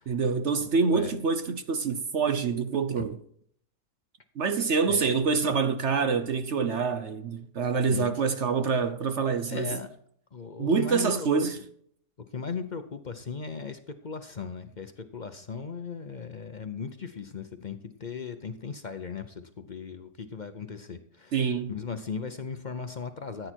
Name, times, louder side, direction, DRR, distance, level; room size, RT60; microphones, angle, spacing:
voice 1, 0.1-3.2 4.4-9.8 10.6-11.6 21.3-21.7, right 5 dB, 55° right, 0.9 m, -26 dB
voice 2, 0.8-1.2 3.0-3.1 4.9-5.2 7.9-8.2 9.5-9.9 10.3-11.3 11.5-11.6 12.3-23.5, left 5 dB, 55° left, 0.5 m, -38 dB
14.0 x 9.3 x 4.6 m
omnidirectional pair, 1.9 m